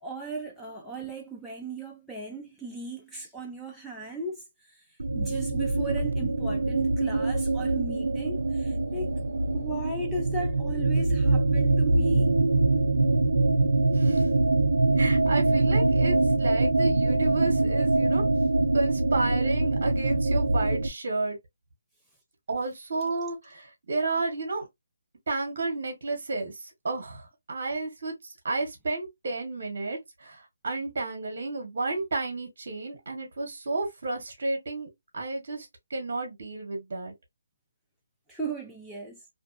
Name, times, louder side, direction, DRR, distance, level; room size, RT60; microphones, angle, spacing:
voice 1, 0.0-4.9 5.1-9.1 9.5-12.4 38.3-39.2, right 2 dB, ahead, 0.3 m, -37 dB
sound 1, 5.0-20.9, right 2 dB, 90° right, 0.4 m, -24 dB
voice 2, 13.9-14.3 15.0-18.2 18.7-21.4 22.5-24.7 25.3-37.1, right 3 dB, 50° right, 0.9 m, -32 dB
2.5 x 2.3 x 2.4 m
hypercardioid pair, 170°, 0 cm